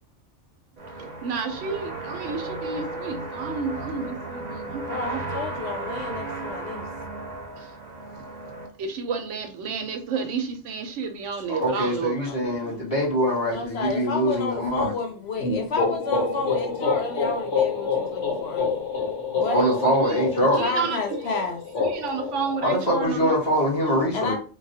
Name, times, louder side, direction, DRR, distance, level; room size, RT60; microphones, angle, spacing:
sound 1, 0.8-8.7, right 2 dB, 40° right, 0.8 m, -34 dB
voice 1, 1.0-5.2 8.8-12.8 19.6-20.2 20.5-21.4 21.8-23.4, right 5 dB, 85° right, 1.0 m, -31 dB
voice 2, 4.9-6.9 12.3-12.4 13.1-18.8 19.4-19.7 20.4-21.6 24.1-24.4, left 4 dB, 65° left, 0.8 m, -31 dB
voice 3, 11.5-14.9 18.4-18.7 19.5-20.6 22.6-24.4, equal, 30° left, 1.3 m, -23 dB
sound 2, 15.4-23.1, left 4 dB, 90° left, 1.3 m, -27 dB
3.2 x 2.3 x 2.7 m
omnidirectional pair, 1.2 m